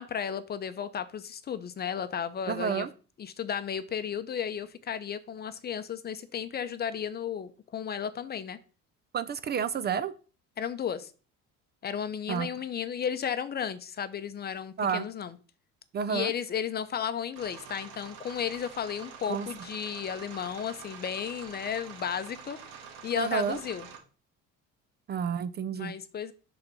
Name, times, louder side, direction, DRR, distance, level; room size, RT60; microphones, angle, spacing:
voice 1, 0.0-2.9 3.2-8.6 10.6-11.1 11.8-15.4 16.1-22.6 23.0-23.9 25.7-26.3, left 8 dB, 30° left, 12 dB, 0.6 m, -34 dB
voice 2, 2.5-2.9 9.1-10.1 12.3-12.5 14.8-15.1 15.9-16.3 19.3-19.5 23.2-23.6 25.1-25.9, right 7 dB, 35° right, 14 dB, 0.4 m, -30 dB
sound 1, 17.4-24.0, right 6 dB, 85° right, 2.0 m, -46 dB
6.8 x 4.0 x 6.0 m, 0.37 s
cardioid pair, 130°, 31 cm